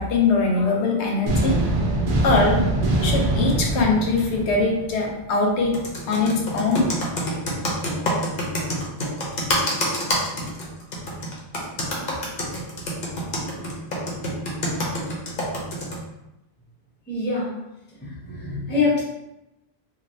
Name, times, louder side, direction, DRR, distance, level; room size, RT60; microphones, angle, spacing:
voice 1, 0.0-1.5 2.2-2.6 3.0-5.7 6.1-6.9, left 3 dB, 90° left, 0 dB, 0.9 m, -21 dB
sound 1, 1.3-5.2, right 1 dB, 60° right, 0.7 m, -23 dB
Computer keyboard, 5.7-16.0, equal, 55° left, 0.8 m, -26 dB
voice 2, 17.1-17.5 18.0-19.0, left 3 dB, 10° left, -7 dB, 0.7 m, -25 dB
3.1 x 2.4 x 2.6 m, 0.94 s
omnidirectional pair, 1.1 m